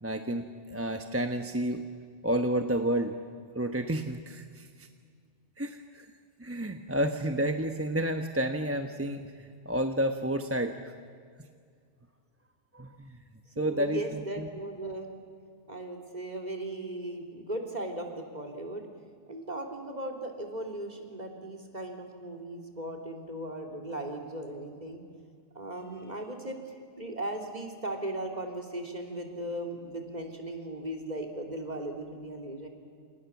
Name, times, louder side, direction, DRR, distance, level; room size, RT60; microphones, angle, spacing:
voice 1, 0.0-1.8 2.2-3.2 3.5-4.9 5.6-6.1 6.4-10.9 12.7-13.2 13.6-14.5, right 1 dB, 10° right, 6 dB, 1.1 m, -30 dB
voice 2, 13.6-15.1 15.7-18.9 19.3-25.0 25.6-32.7, right 1 dB, 35° right, 3 dB, 3.4 m, -37 dB
28.5 x 28.5 x 7.2 m, 2.1 s
omnidirectional pair, 1.3 m